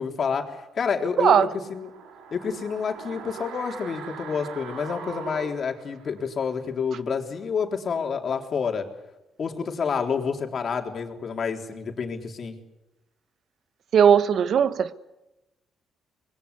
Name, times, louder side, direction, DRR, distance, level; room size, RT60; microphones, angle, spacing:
voice 1, 0.0-1.9 2.3-8.9 9.4-12.6, left 6 dB, 50° left, 3.7 m, -28 dB
voice 2, 1.2-1.5 13.9-14.9, right 8 dB, 65° right, 1.2 m, -18 dB
sound 1, 1.3-6.4 6.7-6.8, right 6 dB, 90° right, 3.0 m, -41 dB
25.5 x 21.0 x 8.4 m
cardioid pair, 90°, 0 cm